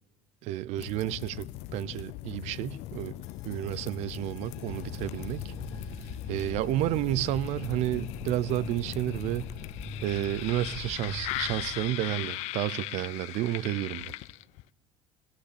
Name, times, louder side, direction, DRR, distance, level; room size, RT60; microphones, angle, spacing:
voice 1, 0.4-3.2 3.4-5.5 6.3-9.5 10.0-14.1, right 14 dB, 65° right, 0.4 m, -31 dB
sound 1, 0.8-14.7, left 18 dB, 70° left, 0.4 m, -39 dB
sound 2, 3.3-11.7, left 2 dB, 35° left, 1.6 m, -42 dB
15.5 x 11.5 x 8.3 m
cardioid pair, 125°, 12 cm